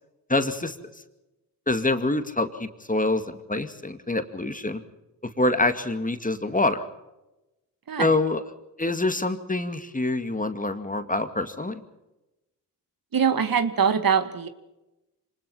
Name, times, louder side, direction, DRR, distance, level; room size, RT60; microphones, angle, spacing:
voice 1, 0.3-0.7 1.7-4.8 5.4-6.8 8.0-8.4 8.8-11.8, left 2 dB, 20° left, 9 dB, 2.3 m, -25 dB
voice 2, 13.1-14.5, right 7 dB, 50° right, 10 dB, 1.9 m, -23 dB
25.5 x 20.0 x 5.6 m, 0.99 s
supercardioid pair, 50°, 43 cm